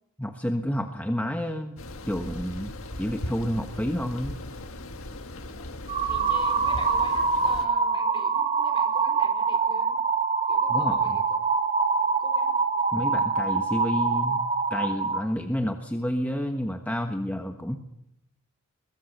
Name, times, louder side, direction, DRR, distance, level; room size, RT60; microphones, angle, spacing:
voice 1, 0.2-1.8 2.1-4.4 10.7-11.2 12.9-14.4 14.7-17.8, equal, 5° left, 4 dB, 1.3 m, -30 dB
sound 1, 1.8-7.7, left 1 dB, 70° left, 1.7 m, -38 dB
sound 2, 5.9-15.2, right 5 dB, 30° right, 1.7 m, -25 dB
voice 2, 6.0-10.0 10.5-11.4 12.2-12.6, left 2 dB, 25° left, 5 dB, 4.5 m, -45 dB
22.5 x 22.0 x 6.7 m, 0.81 s
head